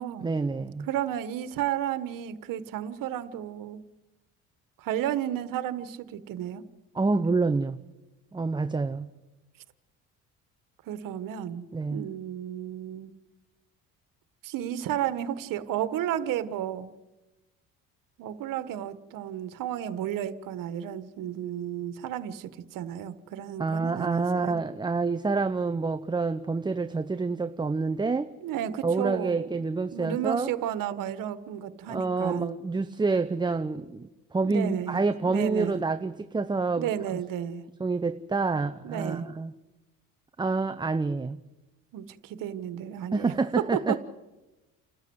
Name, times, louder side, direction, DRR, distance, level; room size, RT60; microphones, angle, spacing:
voice 1, 0.2-0.9 6.9-7.8 8.3-9.1 11.7-12.0 23.6-28.3 28.8-30.5 31.9-37.2 37.8-39.5 40.4-41.4 43.1-44.0, right 3 dB, 15° right, 0.7 m, -28 dB
voice 2, 0.8-3.8 4.8-6.6 10.8-13.1 14.4-16.9 18.2-24.6 28.4-29.5 29.9-32.6 34.4-35.0 35.3-35.8 36.8-37.6 38.8-39.3 41.9-44.0, right 11 dB, 75° right, 1.5 m, -32 dB
29.5 x 13.0 x 8.0 m
cardioid pair, 110°, 33 cm